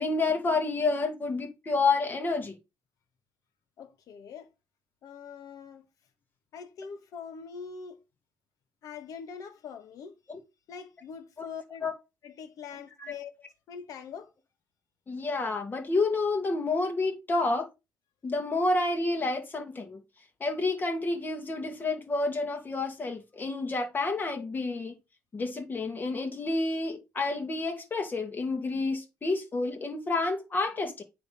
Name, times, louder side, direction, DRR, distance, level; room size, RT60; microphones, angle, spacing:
voice 1, 0.0-2.6 10.3-10.4 11.4-11.5 11.8-11.9 13.0-13.1 15.1-17.7 18.2-20.0 20.4-25.0 25.3-31.0, left 3 dB, 30° left, 2.1 m, -29 dB
voice 2, 3.8-4.5 5.0-5.9 6.5-8.0 8.8-10.2 10.7-11.9 12.2-13.3 13.7-14.3, left 6 dB, 70° left, 1.6 m, -43 dB
9.0 x 3.4 x 5.6 m
cardioid pair, 100°, 6 cm